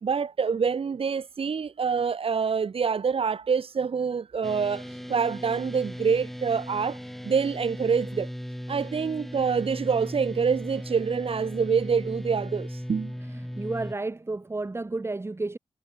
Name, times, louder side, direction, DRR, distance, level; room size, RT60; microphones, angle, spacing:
voice 1, 0.0-4.8 5.1-7.0 7.2-8.3 8.7-13.1, right 6 dB, 60° right, 4.2 m, -26 dB
sound 1, 4.4-13.9, equal, ahead, 1.5 m, -37 dB
voice 2, 13.3-15.6, right 2 dB, 25° right, 7.5 m, -32 dB
wide cardioid pair, 130°, 11 cm